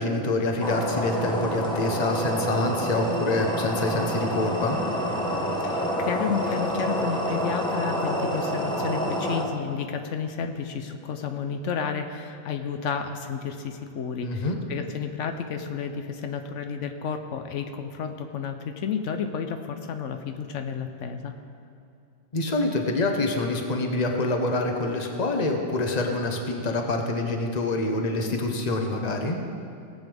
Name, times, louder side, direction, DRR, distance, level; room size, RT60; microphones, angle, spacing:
voice 1, 0.0-4.8 14.2-14.6 22.3-29.4, left 2 dB, 35° left, 3 dB, 1.1 m, -26 dB
sound 1, 0.6-9.4, equal, 5° left, 1.2 m, -28 dB
voice 2, 5.6-21.3, left 6 dB, 80° left, 6 dB, 1.0 m, -31 dB
18.0 x 8.1 x 3.5 m, 2.5 s
omnidirectional pair, 1.2 m